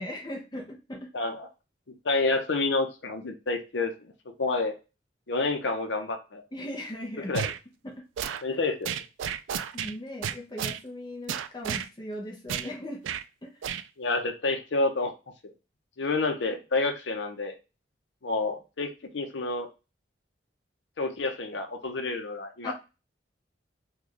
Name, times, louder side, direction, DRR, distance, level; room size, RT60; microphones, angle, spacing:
voice 1, 0.0-1.1 6.5-7.3 7.8-8.1 8.5-8.6 9.7-13.0 13.4-13.6 22.6-22.7, left 1 dB, 20° left, 1 dB, 0.6 m, -38 dB
voice 2, 1.1-1.5 2.0-3.9 4.4-4.7 5.3-6.4 7.3-7.5 8.4-9.0 14.0-15.1 15.4-15.5 16.0-17.5 18.2-19.7 21.0-22.7, left 3 dB, 70° left, 5 dB, 0.7 m, -29 dB
sound 1, 7.3-7.6 8.2-8.4 8.8-9.9 10.2-10.8 11.3-11.9 12.5-12.7 13.0-13.2 13.6-13.8, right 8 dB, 85° right, 0.3 m, -32 dB
3.2 x 2.3 x 3.8 m, 0.29 s
head